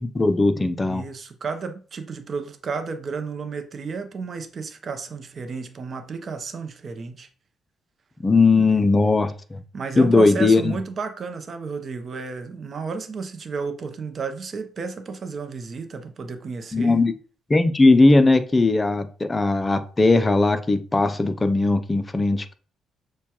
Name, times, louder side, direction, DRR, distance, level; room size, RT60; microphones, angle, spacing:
voice 1, 0.0-1.0 8.2-9.6 10.0-10.8 16.7-17.1 17.5-22.5, left 3 dB, 20° left, 0.4 m, -18 dB
voice 2, 0.8-7.3 8.5-8.9 9.7-17.0, right 5 dB, 45° right, 0.6 m, -32 dB
6.6 x 2.3 x 2.9 m
cardioid pair, 90°, 0 cm